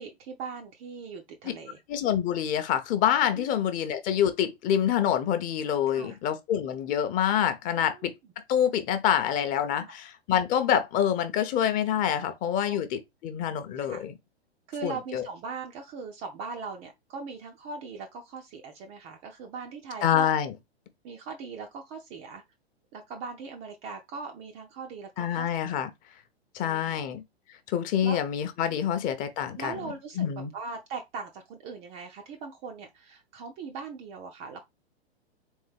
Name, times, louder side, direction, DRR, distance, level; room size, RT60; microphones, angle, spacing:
voice 1, 0.0-1.8 3.4-3.5 5.9-6.2 7.8-8.1 9.8-9.9 12.2-12.3 12.6-12.8 13.8-14.0 14.7-20.3 21.0-22.4 22.9-25.5 26.6-27.0 28.0-28.2 28.8-29.0 29.6-34.6, right 4 dB, 20° right, 0.4 m, -40 dB
voice 2, 1.9-8.1 8.5-14.1 14.8-15.3 20.0-20.5 25.2-25.9 26.5-27.2 27.7-29.7 30.2-30.5, left 9 dB, 25° left, 0.6 m, -26 dB
3.6 x 3.6 x 3.3 m
figure-of-eight pair, 110°, 33 cm